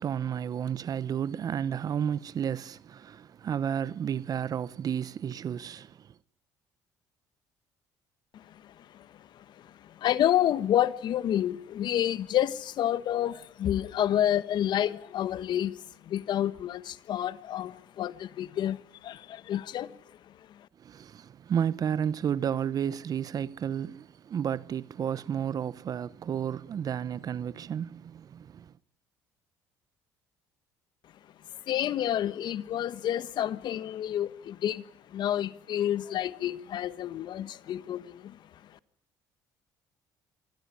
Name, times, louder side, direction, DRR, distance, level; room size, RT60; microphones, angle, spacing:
voice 1, 0.0-5.9 20.8-28.6, right 8 dB, 50° right, 0.9 m, -32 dB
voice 2, 8.3-20.0 20.5-20.7 31.7-38.8, left 11 dB, 60° left, 1.3 m, -29 dB
25.0 x 15.5 x 10.0 m
supercardioid pair, 80°, 8 cm